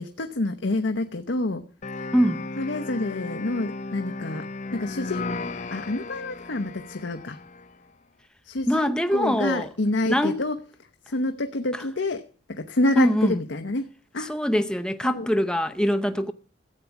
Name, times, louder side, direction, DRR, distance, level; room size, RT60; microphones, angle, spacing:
voice 1, 0.0-1.6 2.0-2.1 2.6-4.4 4.7-5.3 5.7-7.4 8.4-10.6 11.0-12.2 12.5-13.8 14.1-14.3 15.0-15.3, left 2 dB, 85° left, 0.9 m, -28 dB
sound 1, 1.8-7.8, left 3 dB, 40° left, 0.7 m, -35 dB
voice 2, 8.7-9.7 10.1-10.4 11.7-11.8 13.0-13.4 14.2-16.3, equal, 5° left, 0.6 m, -23 dB
14.0 x 8.4 x 7.0 m
head